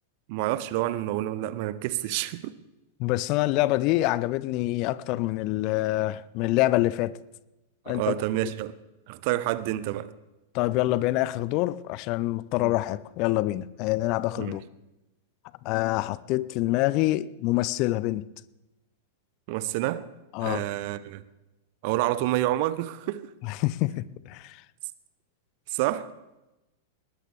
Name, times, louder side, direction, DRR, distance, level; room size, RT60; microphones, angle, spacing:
voice 1, 0.3-2.5 7.9-8.7 9.1-10.1 12.6-12.7 14.4-14.6 19.5-20.0 20.4-21.2 21.8-23.3 25.7-26.1, right 15 dB, 45° right, 0.8 m, -28 dB
voice 2, 3.0-7.2 7.9-8.1 8.4-8.5 10.5-14.6 15.6-18.3 20.3-20.6 23.4-24.6, left 17 dB, 40° left, 0.5 m, -26 dB
20.5 x 19.5 x 3.4 m
figure-of-eight pair, 95°, 0 cm